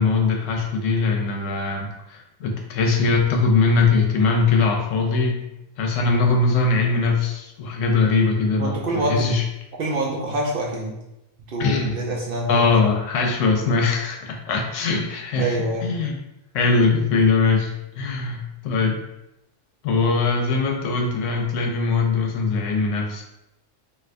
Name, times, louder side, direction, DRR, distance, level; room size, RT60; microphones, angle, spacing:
voice 1, 0.0-5.4 5.8-9.4 11.6-12.0 12.5-15.6 15.8-16.2 16.5-19.0 19.8-23.2, left 4 dB, 90° left, 2 dB, 1.0 m, -21 dB
voice 2, 8.6-9.3 9.8-11.0 11.5-12.8 15.3-15.9, right 1 dB, 60° right, -2 dB, 0.6 m, -26 dB
3.2 x 2.6 x 2.5 m, 0.90 s
omnidirectional pair, 1.3 m